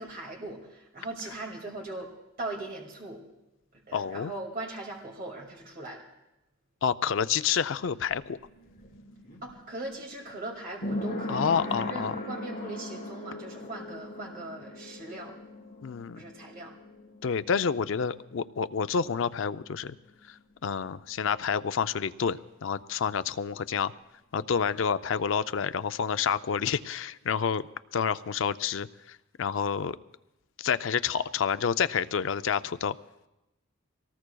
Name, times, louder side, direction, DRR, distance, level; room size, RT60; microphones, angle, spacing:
voice 1, 0.0-2.1 2.4-3.2 3.9-6.0 9.4-11.5 11.8-15.3 16.2-16.7, right 2 dB, 45° right, -1 dB, 2.2 m, -39 dB
voice 2, 3.9-4.3 6.8-8.4 11.3-12.1 15.8-16.2 17.2-20.0 20.3-23.9 24.3-27.6 27.9-30.0 30.6-33.0, left 6 dB, 65° left, 13 dB, 0.4 m, -29 dB
sound 1, 7.8-19.2 19.5-19.6, left 1 dB, 45° left, 3.7 m, -39 dB
24.5 x 18.5 x 2.3 m, 0.94 s
head